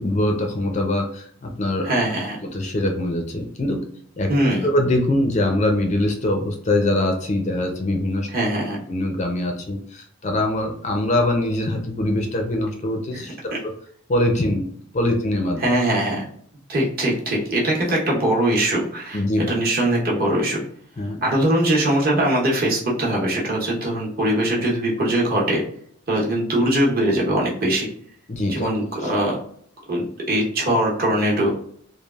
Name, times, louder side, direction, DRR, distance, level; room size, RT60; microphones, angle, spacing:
voice 1, 0.0-1.9 2.5-3.8 4.2-4.3 4.6-8.3 8.9-13.3 14.1-14.7 14.9-15.6 19.1-19.5 21.0-21.2 28.3-28.7, left 1 dB, 35° left, 2 dB, 0.4 m, -23 dB
voice 2, 1.8-2.4 4.3-4.7 8.3-8.8 13.1-13.6 15.6-16.2 16.7-20.6 21.2-25.6 26.1-27.9 28.5-29.3 29.9-31.5, right 1 dB, 45° right, -3 dB, 0.9 m, -21 dB
3.2 x 2.3 x 2.3 m, 0.62 s
head